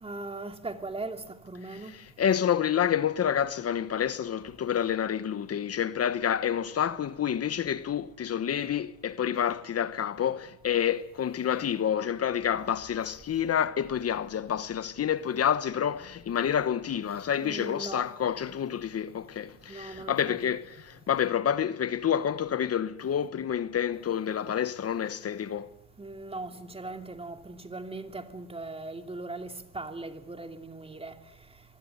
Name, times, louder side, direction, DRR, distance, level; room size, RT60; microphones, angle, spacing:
voice 1, 0.0-1.9 17.4-18.1 19.7-20.4 26.0-31.1, right 2 dB, 20° right, 2.8 m, -39 dB
voice 2, 1.7-25.7, left 9 dB, 55° left, 1.1 m, -28 dB
25.5 x 20.5 x 9.4 m
cardioid pair, 90°, 30 cm